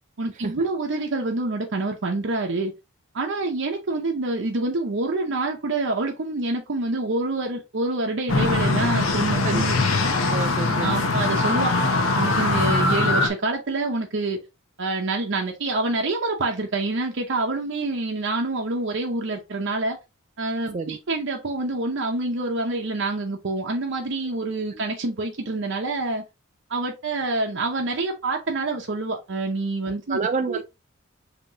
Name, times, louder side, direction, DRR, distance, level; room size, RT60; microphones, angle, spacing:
voice 1, 0.2-2.7 3.1-9.8 10.8-11.8 12.1-14.4 14.8-20.0 20.4-26.2 26.7-30.2 30.5-30.6, right 2 dB, 60° right, 0.7 m, -26 dB
sound 1, 8.3-13.3, left 3 dB, 80° left, 0.8 m, -22 dB
voice 2, 10.3-11.0 20.7-21.0 24.7-24.8 30.1-30.6, right 4 dB, 35° right, 0.4 m, -28 dB
5.4 x 2.9 x 2.8 m
head